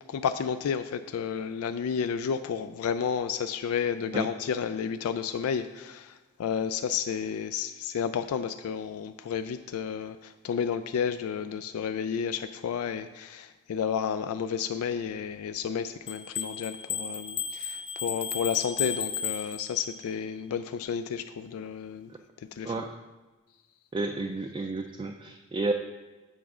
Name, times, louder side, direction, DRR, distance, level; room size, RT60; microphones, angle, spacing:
voice 1, 0.1-22.1 22.5-22.7, left 7 dB, 90° left, 10 dB, 0.3 m, -31 dB
sound 1, 16.1-20.0, left 7 dB, 25° left, 0.6 m, -34 dB
voice 2, 23.9-25.7, right 3 dB, 25° right, 4 dB, 0.3 m, -31 dB
8.2 x 3.5 x 6.1 m, 1.2 s
head